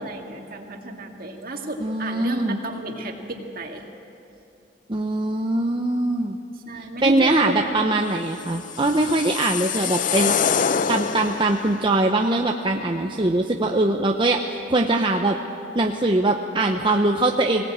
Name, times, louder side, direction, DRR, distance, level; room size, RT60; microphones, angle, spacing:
voice 1, 0.0-3.8 6.7-7.9 9.4-9.7, right 1 dB, 50° right, 2 dB, 2.1 m, -32 dB
voice 2, 1.8-2.6 4.9-6.4 7.0-10.5 10.9-15.4 15.7-17.6, right 2 dB, 30° right, 2 dB, 0.8 m, -22 dB
sound 1, 8.5-11.7, left 7 dB, 45° left, 0.5 m, -25 dB
21.5 x 17.5 x 8.8 m, 2.7 s
head